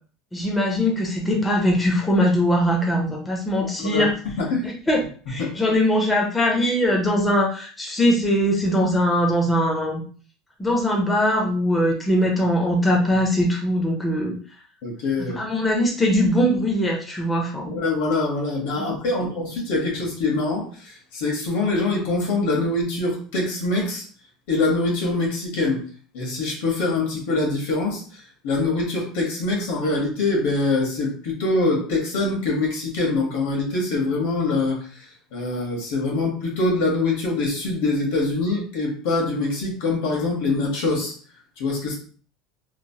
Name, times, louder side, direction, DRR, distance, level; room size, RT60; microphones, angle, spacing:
voice 1, 0.3-4.1 4.6-5.0 5.3-10.0 10.6-14.3 15.2-17.7 18.8-18.9, equal, 10° left, 0 dB, 0.5 m, -21 dB
voice 2, 3.6-4.1 4.4-4.7 5.4-5.5 14.8-15.4 17.7-24.0 24.5-25.8 26.1-34.9 35.3-41.1 41.6-41.9, left 2 dB, 75° left, 0 dB, 1.1 m, -24 dB
2.9 x 2.1 x 2.7 m, 0.42 s
cardioid pair, 165°, 0 cm